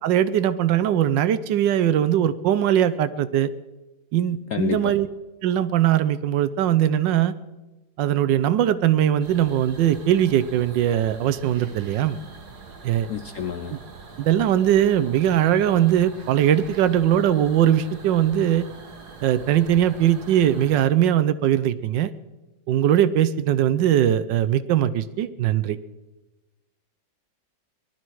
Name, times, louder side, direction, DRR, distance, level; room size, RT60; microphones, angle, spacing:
voice 1, 0.0-3.5 4.1-5.1 5.4-7.3 8.0-12.2 12.8-13.1 13.7-13.8 14.2-18.7 19.2-22.1 22.7-25.8, right 11 dB, 75° right, 15 dB, 1.3 m, -20 dB
voice 2, 4.5-4.9 13.1-13.7, left 8 dB, 70° left, 8 dB, 0.7 m, -28 dB
sound 1, 9.2-20.9, right 4 dB, 55° right, 2.1 m, -44 dB
19.0 x 12.0 x 4.7 m, 1.1 s
omnidirectional pair, 2.0 m